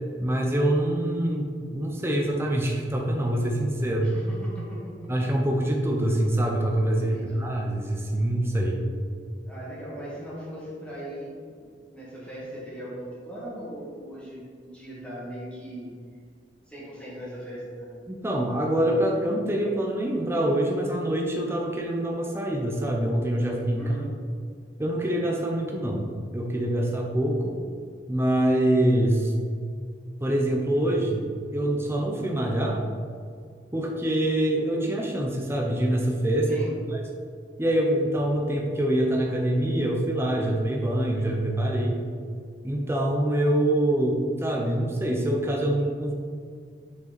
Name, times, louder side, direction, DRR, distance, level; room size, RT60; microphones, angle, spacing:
voice 1, 0.2-4.1 5.1-8.8 18.1-24.0 24.8-27.5 28.1-29.3 30.2-31.3 31.5-32.8 33.7-36.6 36.9-37.0 37.6-42.0 42.6-46.1, right 1 dB, 15° right, 0 dB, 0.7 m, -25 dB
voice 2, 4.0-5.1 6.9-7.5 9.5-15.9 16.7-18.0 23.8-24.1 36.5-36.8, right 1 dB, 5° left, -8 dB, 1.9 m, -39 dB
6.8 x 5.7 x 4.1 m, 2.1 s
head